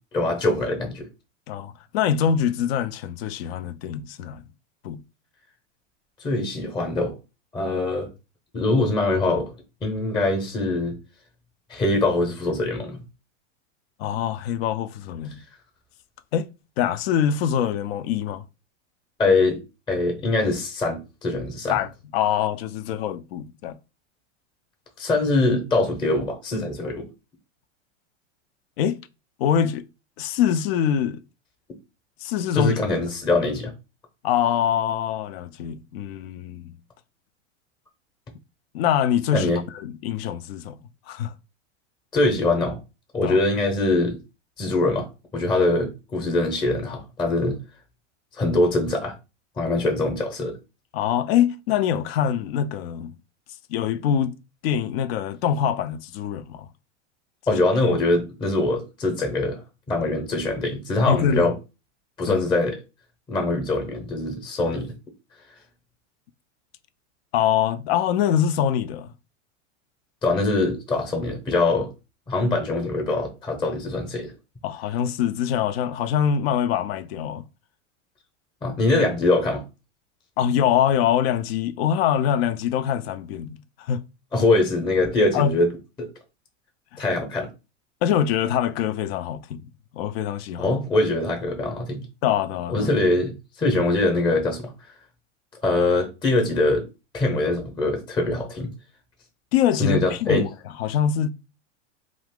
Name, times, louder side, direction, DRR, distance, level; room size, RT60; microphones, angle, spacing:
voice 1, 0.1-1.1 6.2-7.1 7.5-8.1 8.5-9.5 9.8-11.0 11.7-13.0 19.2-19.6 19.9-21.8 25.0-27.1 32.5-33.7 39.3-39.6 42.1-42.8 43.1-44.2 44.6-45.1 45.3-47.6 48.4-49.1 49.6-50.5 57.5-59.6 59.9-61.5 62.2-62.8 63.3-64.9 70.2-71.9 72.3-74.3 78.6-79.6 84.3-85.7 86.0-86.1 87.0-87.5 90.6-92.0 92.7-93.3 93.6-94.7 95.6-96.8 97.1-98.7 99.8-100.4, left 2 dB, 15° left, 0.7 m, -23 dB
voice 2, 1.5-4.4 4.8-5.0 14.0-15.4 16.3-16.5 16.8-18.4 21.7-23.8 28.8-29.0 29.4-29.9 30.2-31.2 32.2-32.8 34.2-36.8 38.7-40.8 41.1-41.3 43.2-43.4 50.9-53.1 53.7-54.4 54.6-56.7 61.0-61.5 62.3-62.4 67.3-69.1 74.6-77.4 80.4-84.0 85.3-85.5 86.9-87.0 88.0-90.8 92.2-92.9 99.5-100.5 100.8-101.3, left 9 dB, 55° left, 0.4 m, -24 dB
2.6 x 2.4 x 3.5 m
hypercardioid pair, 120°, 37 cm